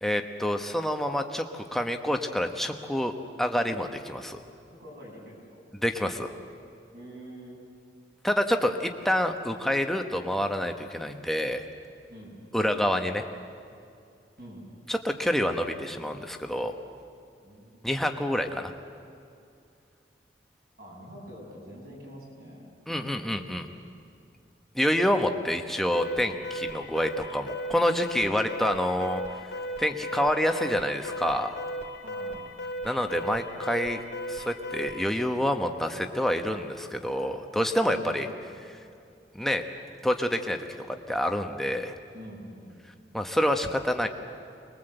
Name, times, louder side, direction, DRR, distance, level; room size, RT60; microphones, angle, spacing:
voice 1, 0.0-3.1 3.4-4.4 5.8-6.3 8.2-11.6 12.5-13.2 14.9-16.7 17.8-18.7 22.9-23.7 24.7-29.2 29.8-31.6 32.8-34.0 34.3-38.3 39.3-39.6 40.0-41.9 43.1-44.1, equal, ahead, 4 dB, 1.1 m, -27 dB
voice 2, 4.8-5.6 6.9-7.6 12.1-12.4 14.4-14.7 17.4-17.8 20.8-22.6 32.0-32.4 37.9-38.3 42.1-43.1, equal, 55° right, -3 dB, 7.8 m, -45 dB
Alarm, 25.9-35.1, equal, 85° left, 2.2 m, -36 dB
25.5 x 21.5 x 8.0 m, 2.5 s
head